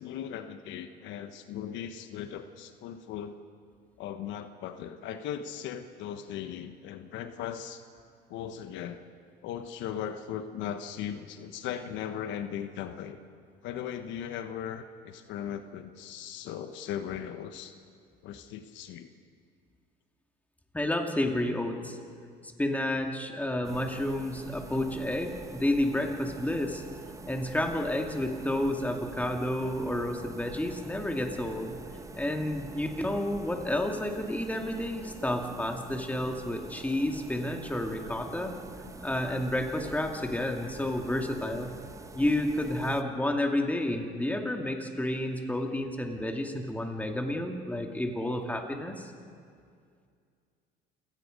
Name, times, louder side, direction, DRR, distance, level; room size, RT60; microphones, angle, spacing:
voice 1, 0.0-3.4 4.0-7.8 8.3-9.0 9.4-13.2 13.6-17.7 18.2-19.1, left 9 dB, 70° left, 9 dB, 1.1 m, -38 dB
voice 2, 20.7-22.0 22.6-26.8 27.3-31.8 32.1-38.6 39.0-41.7 42.1-49.1, left 1 dB, 10° left, 3 dB, 2.4 m, -30 dB
sound 1, 23.6-43.0, right 3 dB, 15° right, 1.1 m, -46 dB
28.5 x 18.0 x 5.3 m, 2.2 s
supercardioid pair, 90°, 20 cm